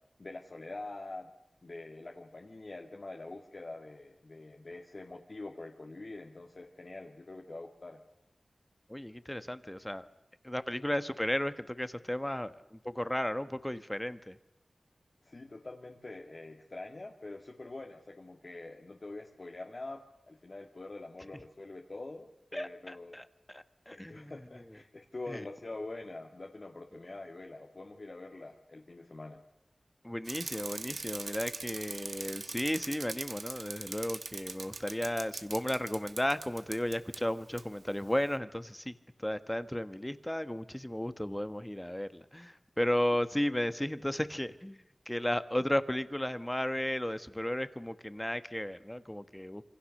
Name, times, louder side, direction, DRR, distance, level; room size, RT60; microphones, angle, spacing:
voice 1, 0.2-1.3 1.6-8.0 15.2-23.2 23.9-29.4, left 2 dB, 50° left, 1 dB, 2.1 m, -45 dB
voice 2, 8.9-10.1 10.4-14.4 22.5-24.8 25.3-25.4 26.9-27.0 30.0-49.6, left 1 dB, 10° left, 11 dB, 1.4 m, -34 dB
Bicycle, 30.3-37.2 37.6-37.7, right 4 dB, 75° right, 1.3 m, -42 dB
27.0 x 25.5 x 6.7 m, 0.91 s
wide cardioid pair, 70°, 0 cm